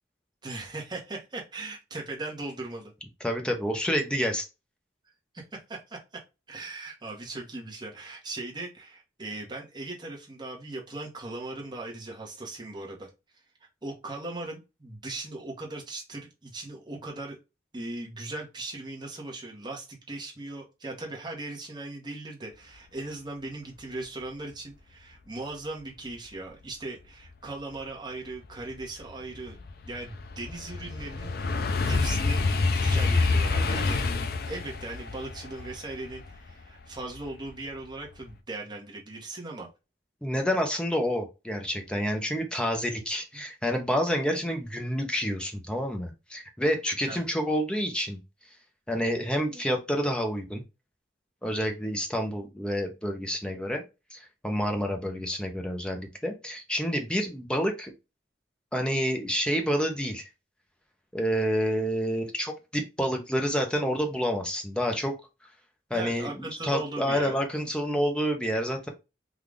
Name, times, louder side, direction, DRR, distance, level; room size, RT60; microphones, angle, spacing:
voice 1, 0.4-2.9 5.3-6.0 6.5-13.1 13.8-17.4 17.7-29.6 29.8-31.3 31.8-32.4 32.7-34.0 34.5-39.7 43.3-43.4 47.0-47.2 65.9-67.3, right 2 dB, 25° right, -1 dB, 1.0 m, -38 dB
voice 2, 3.2-4.5 40.2-48.2 48.9-50.6 51.4-53.8 54.1-57.9 58.7-60.3 61.1-65.1 65.9-68.9, equal, 5° left, 3 dB, 0.6 m, -28 dB
sound 1, 27.9-28.0 28.4-37.5 37.9-38.3, left 3 dB, 50° left, 0.4 m, -28 dB
3.7 x 2.4 x 3.2 m, 0.26 s
head